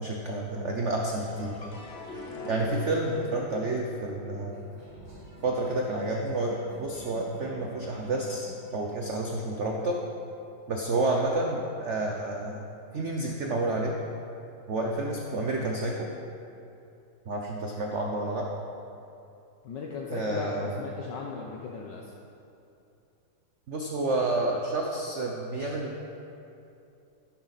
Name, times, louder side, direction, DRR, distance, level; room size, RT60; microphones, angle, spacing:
voice 1, 0.0-1.6 2.5-4.6 5.4-10.0 10.7-12.6 12.9-13.9 14.7-16.1 17.3-18.5 20.1-20.8 23.7-26.0, right 2 dB, 65° right, 0 dB, 0.7 m, -30 dB
sound 1, 1.0-4.1 4.4-4.5, equal, ahead, 2.5 m, -49 dB
sound 2, 1.6-8.0 8.5-9.2, left 1 dB, 40° left, 0.9 m, -44 dB
sound 3, 4.5-9.5, right 1 dB, 40° right, 2.7 m, -49 dB
voice 2, 19.6-22.1, left 5 dB, 65° left, -1 dB, 1.3 m, -37 dB
11.5 x 10.5 x 4.1 m, 2.7 s
omnidirectional pair, 2.3 m